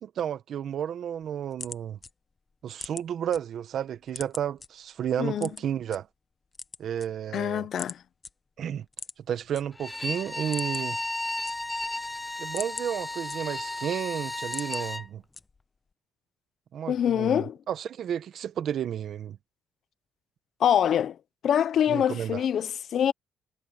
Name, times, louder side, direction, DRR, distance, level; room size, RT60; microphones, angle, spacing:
voice 1, 0.0-2.0 2.6-6.1 6.8-7.7 8.6-8.8 9.3-11.0 12.4-15.2 16.7-19.4 21.9-22.4, right 9 dB, 60° right, 1.1 m, -32 dB
sound 1, 1.1-3.4 3.8-4.7 5.4-6.0 6.4-7.4 7.8-8.0 8.2-8.3 8.9-9.6 10.0-10.1 10.4-11.0 11.3-11.9 12.3-13.8 14.2-14.8 15.3-15.8, left 4 dB, 25° left, 1.1 m, -41 dB
voice 2, 5.2-5.5 7.3-8.0 16.9-17.6 20.6-21.2 21.4-23.1, left 9 dB, 60° left, 0.8 m, -25 dB
Bowed string instrument, 9.7-15.1, left 2 dB, 10° left, 0.3 m, -34 dB
cardioid pair, 110°, 0 cm